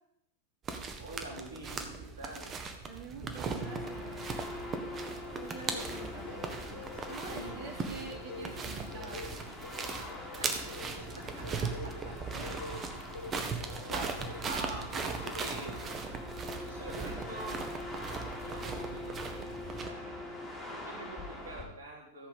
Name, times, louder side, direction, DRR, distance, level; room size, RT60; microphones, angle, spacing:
sound 1, 0.7-19.9, right 5 dB, 25° right, 1.5 m, -39 dB
voice 1, 1.0-2.5 6.0-6.9 7.3-8.0 10.4-14.2 14.5-16.0 16.4-17.6 18.4-19.5 19.8-20.2 20.7-22.3, right 2 dB, 70° right, -1 dB, 3.1 m, -47 dB
voice 2, 2.9-4.3 5.3-6.5 7.0-9.4 12.3-12.6 15.2-15.3 16.4-16.7, right 5 dB, 45° right, 2 dB, 3.0 m, -47 dB
sound 2, 3.5-21.6, left 2 dB, 15° left, 5.7 m, -43 dB
sound 3, 5.2-19.8, left 4 dB, 65° left, 1.4 m, -49 dB
15.0 x 7.9 x 5.2 m, 0.81 s
figure-of-eight pair, 90°, 0 cm